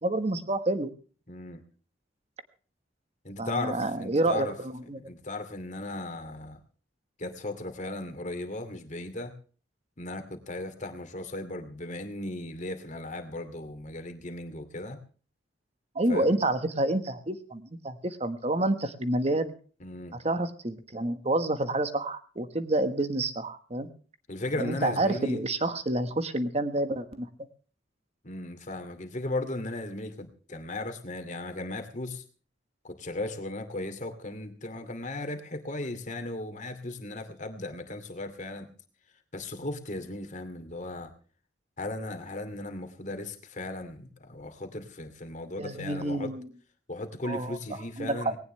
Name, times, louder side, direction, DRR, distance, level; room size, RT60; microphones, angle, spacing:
voice 1, 0.0-0.9 3.4-5.1 15.9-19.5 20.2-23.9 24.6-27.3 45.6-46.5 47.2-47.6 48.0-48.3, right 2 dB, 35° right, 10 dB, 1.4 m, -28 dB
voice 2, 1.3-1.6 3.2-4.5 5.0-6.6 7.2-9.3 10.0-15.0 16.1-16.4 19.8-20.2 24.3-25.4 28.2-32.2 32.8-38.7 39.3-41.1 41.8-46.3 46.9-48.4, left 2 dB, 40° left, 7 dB, 2.5 m, -36 dB
19.0 x 18.0 x 3.3 m, 0.40 s
head